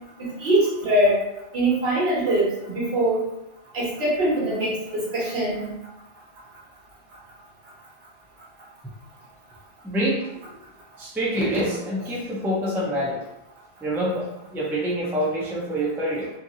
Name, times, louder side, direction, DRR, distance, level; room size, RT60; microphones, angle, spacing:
voice 1, 0.2-1.2 1.5-3.2 3.7-5.7, right 1 dB, 70° right, -6 dB, 1.2 m, -22 dB
voice 2, 9.8-10.3 11.0-13.2 13.8-16.3, equal, 5° right, -5 dB, 0.5 m, -26 dB
2.8 x 2.5 x 2.7 m, 0.88 s
omnidirectional pair, 1.1 m